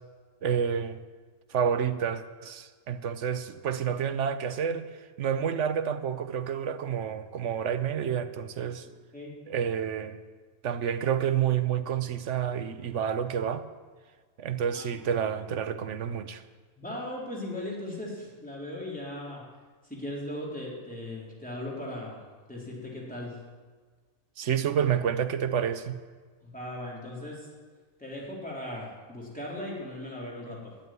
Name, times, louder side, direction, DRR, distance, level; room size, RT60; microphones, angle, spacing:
voice 1, 0.4-1.0 1.5-4.9 5.2-8.9 9.5-10.2 10.6-13.6 14.4-16.4 24.4-26.0, right 8 dB, 60° right, 1.1 m, -29 dB
voice 2, 16.8-19.4 19.9-22.2 22.5-23.4 26.4-27.5 28.0-30.7, left 1 dB, 5° left, 3.8 m, -38 dB
12.5 x 10.5 x 9.2 m
omnidirectional pair, 1.5 m